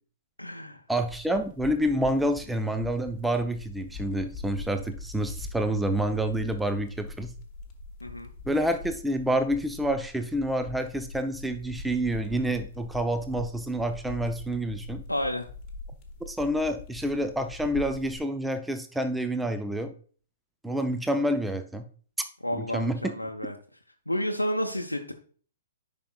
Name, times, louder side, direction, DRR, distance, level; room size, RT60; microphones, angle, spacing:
voice 1, 0.4-0.8 8.0-8.3 15.1-15.4 22.4-23.5 24.1-25.1, equal, 90° left, 3 dB, 0.7 m, -30 dB
voice 2, 0.9-7.3 8.5-15.0 16.2-19.9 20.6-21.8 22.5-23.1, right 1 dB, 5° right, 7 dB, 0.5 m, -28 dB
sound 1, 1.0-18.2, left 3 dB, 25° left, 1.3 m, -43 dB
10.0 x 5.2 x 2.3 m, 0.43 s
figure-of-eight pair, 115°, 0 cm